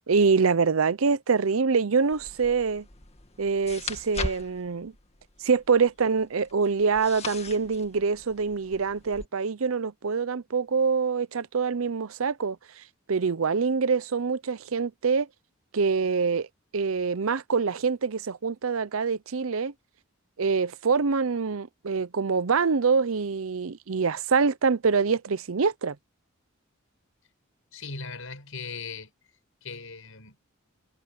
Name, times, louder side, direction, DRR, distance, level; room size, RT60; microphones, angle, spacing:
voice 1, 0.1-2.8 3.4-4.9 5.4-12.8 13.1-15.3 15.7-16.5 16.7-19.7 20.4-26.0, right 5 dB, 75° right, 0.7 m, -25 dB
sound 1, 2.1-9.3, left 3 dB, 30° left, 2.0 m, -40 dB
voice 2, 27.7-29.1 29.6-30.4, left 4 dB, 75° left, 7.4 m, -38 dB
head